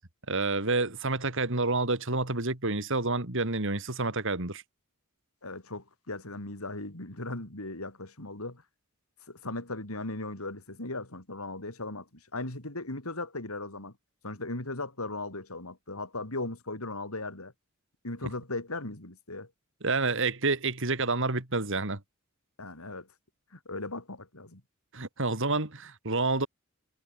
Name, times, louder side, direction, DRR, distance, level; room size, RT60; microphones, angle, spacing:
voice 1, 0.3-4.6 19.8-22.0 24.9-26.5, right 3 dB, 65° right, 3.5 m, -28 dB
voice 2, 5.4-8.6 9.3-12.1 12.3-13.9 14.2-17.5 18.0-19.5 22.6-23.1 23.5-24.6, left 2 dB, 90° left, 4.6 m, -37 dB
head